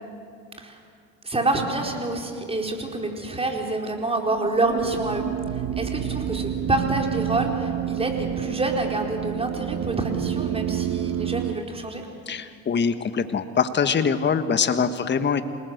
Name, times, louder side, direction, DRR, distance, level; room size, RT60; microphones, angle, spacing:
voice 1, 1.2-5.2 5.8-12.0, right 2 dB, 15° right, 2 dB, 4.4 m, -27 dB
sound 1, 4.3-11.5, right 10 dB, 45° right, 1.2 m, -29 dB
voice 2, 12.3-15.4, left 6 dB, 30° left, 10 dB, 1.5 m, -23 dB
27.0 x 19.5 x 8.0 m, 2.3 s
supercardioid pair, 90°, 36 cm